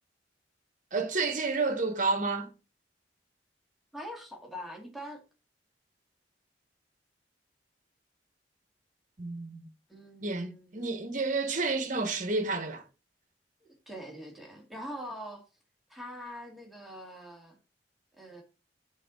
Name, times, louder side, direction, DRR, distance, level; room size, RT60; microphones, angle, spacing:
voice 1, 0.9-2.5 9.2-9.7 10.2-12.8, right 3 dB, 45° right, 1.3 m, -30 dB
voice 2, 3.9-5.2 9.9-10.8 13.6-15.4 15.9-17.6 18.2-18.4, equal, ahead, 2.1 m, -43 dB
8.0 x 4.1 x 6.2 m
head